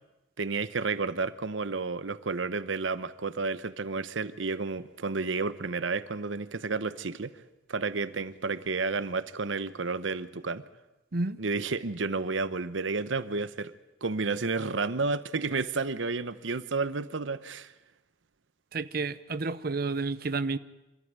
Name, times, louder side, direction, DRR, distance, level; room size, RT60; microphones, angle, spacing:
voice 1, 0.4-7.4 7.7-10.6 11.4-13.7 14.0-17.7, right 4 dB, 80° right, 15 dB, 0.9 m, -31 dB
voice 2, 18.7-20.6, right 3 dB, 55° right, 14 dB, 0.8 m, -30 dB
27.0 x 13.5 x 9.5 m, 0.99 s
head